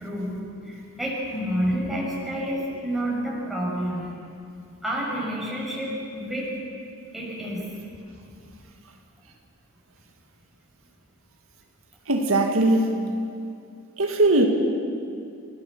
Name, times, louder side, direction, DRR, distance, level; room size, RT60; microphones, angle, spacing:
voice 1, 0.0-4.1 4.8-6.5 7.1-7.7, equal, ahead, -5 dB, 6.1 m, -29 dB
voice 2, 12.1-12.9 14.0-14.5, right 2 dB, 80° right, 2 dB, 2.1 m, -20 dB
29.5 x 16.0 x 7.4 m, 2.5 s
head